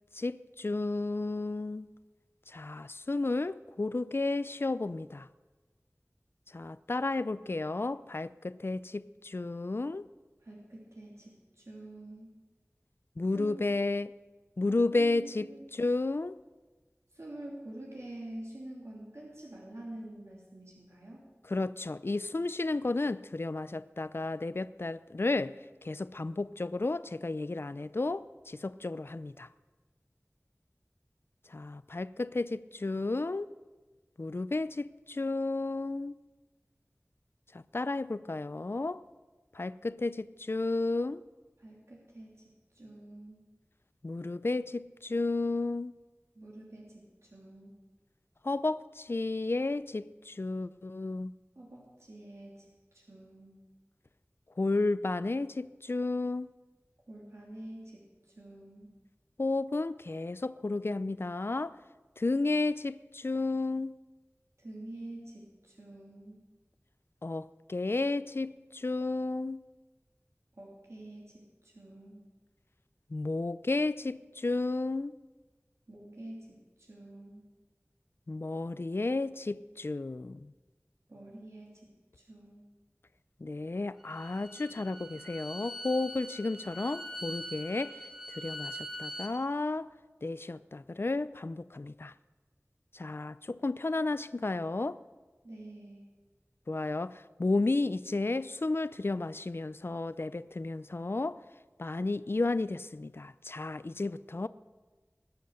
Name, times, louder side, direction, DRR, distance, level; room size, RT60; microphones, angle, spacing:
voice 1, 0.1-1.9 2.5-5.3 6.5-10.1 13.2-14.1 14.6-16.4 21.5-29.5 31.5-33.5 34.2-36.1 37.5-39.0 39.5-41.2 44.0-45.9 48.4-51.3 54.6-56.5 59.4-61.8 62.2-63.9 67.2-69.6 73.1-75.1 78.3-80.5 83.4-89.9 90.2-92.1 92.9-95.0 96.7-101.4 101.8-104.5, left 2 dB, 55° left, 0.4 m, -32 dB
voice 2, 10.4-12.3 13.3-13.7 14.9-15.7 17.1-21.3 41.6-43.5 46.3-47.8 51.5-53.7 57.1-58.9 64.6-66.4 70.5-72.3 75.9-77.5 81.1-82.6 95.4-96.0, right 1 dB, 80° right, 3.0 m, -47 dB
Bowed string instrument, 84.0-89.3, equal, 10° right, 3.0 m, -43 dB
20.5 x 8.0 x 6.5 m
wide cardioid pair, 45°, 5 cm